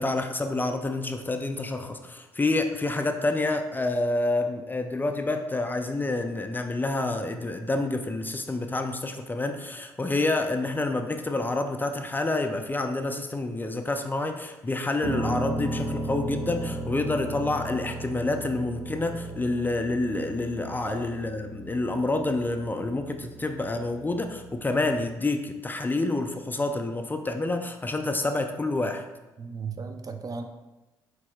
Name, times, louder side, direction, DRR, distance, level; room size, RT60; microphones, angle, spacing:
voice 1, 0.0-29.1, left 2 dB, 20° left, 6 dB, 0.4 m, -28 dB
Piano, 15.0-25.1, right 1 dB, 60° right, 0.9 m, -36 dB
voice 2, 29.4-30.4, right 5 dB, 40° right, 7 dB, 0.5 m, -36 dB
4.6 x 4.2 x 2.3 m, 1.1 s
hypercardioid pair, 55°, 10 cm